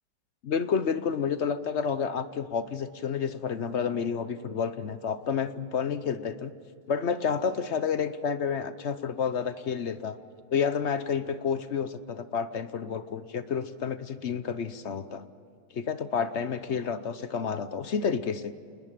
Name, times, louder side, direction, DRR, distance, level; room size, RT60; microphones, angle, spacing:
voice 1, 0.4-6.5 6.9-10.2 10.5-15.2 15.7-18.5, left 6 dB, 50° left, 12 dB, 0.8 m, -30 dB
28.5 x 20.0 x 7.6 m, 2.5 s
omnidirectional pair, 2.0 m